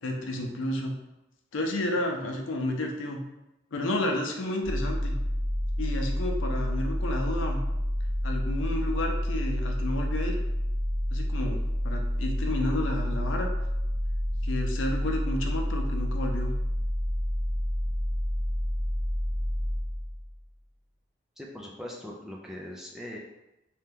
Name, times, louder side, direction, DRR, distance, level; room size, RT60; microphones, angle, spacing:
voice 1, 0.0-0.9 1.5-3.2 3.7-5.2 5.8-7.6 8.2-10.4 11.1-13.5 14.4-16.5, left 1 dB, 90° left, 2 dB, 0.5 m, -31 dB
sound 1, 4.6-20.4, equal, 75° right, 0.8 m, -29 dB
voice 2, 21.4-23.2, left 1 dB, 5° right, -2 dB, 0.3 m, -40 dB
2.7 x 2.2 x 3.4 m, 0.93 s
head